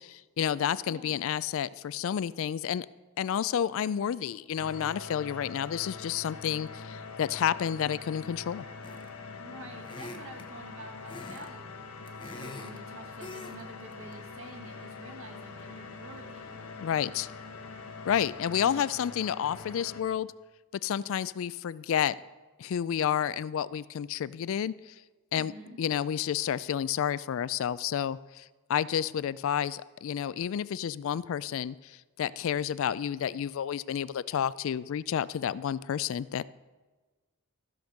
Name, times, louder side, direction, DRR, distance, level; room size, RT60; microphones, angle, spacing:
voice 1, 0.0-2.9 3.2-8.7 16.8-17.3 18.0-20.3 20.8-22.1 22.6-24.8 25.3-25.5 25.8-28.4 28.7-36.4, left 9 dB, 65° left, 18 dB, 0.3 m, -30 dB
voice 2, 0.9-1.2 9.4-16.6 18.6-18.7 25.3-25.8, right 1 dB, 65° right, 3 dB, 1.6 m, -48 dB
sound 1, 4.6-20.0, left 4 dB, 90° left, 1.2 m, -44 dB
sound 2, 8.8-9.2 9.8-10.5 11.1-11.5 11.8-12.8 13.2-13.6 13.9-14.1, left 2 dB, 20° left, 0.8 m, -44 dB
14.5 x 5.2 x 6.5 m, 1.3 s
head